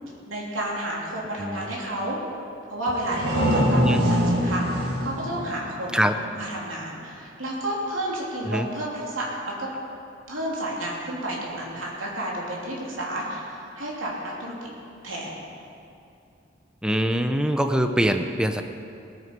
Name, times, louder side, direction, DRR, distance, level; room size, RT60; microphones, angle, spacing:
voice 1, 0.3-2.2 2.6-6.0 6.3-9.3 9.6-9.7 10.3-14.5 15.0-15.4, right 1 dB, 85° right, -4 dB, 3.2 m, -31 dB
voice 2, 1.4-1.7 3.7-4.1 5.9-6.1 8.5-8.7 16.8-18.6, equal, 5° right, 7 dB, 0.7 m, -23 dB
sound 1, 2.9-6.5, equal, 60° right, 2.1 m, -24 dB
19.0 x 9.5 x 5.3 m, 2.6 s
head